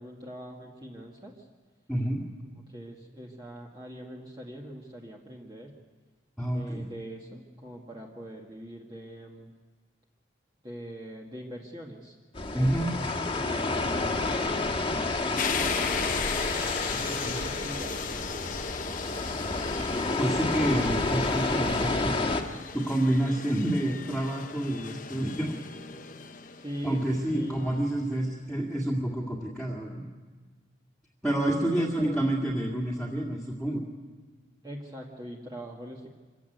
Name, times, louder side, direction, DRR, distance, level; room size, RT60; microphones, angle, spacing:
voice 1, 0.0-1.4 2.7-5.7 6.5-9.5 10.6-12.2 12.5-14.6 15.2-16.3 17.0-18.2 26.6-27.7 31.2-32.2 34.6-36.1, right 1 dB, 20° right, -2 dB, 1.8 m, -42 dB
voice 2, 1.9-2.2 6.4-6.9 12.5-12.9 16.9-17.4 20.2-22.5 22.7-25.5 26.8-30.0 31.2-33.8, right 1 dB, 5° left, -4 dB, 2.1 m, -28 dB
sound 1, 12.3-22.4, left 3 dB, 30° left, 1.7 m, -30 dB
sound 2, 15.4-28.1, left 6 dB, 45° left, 1.0 m, -37 dB
25.5 x 16.0 x 9.3 m, 1.4 s
head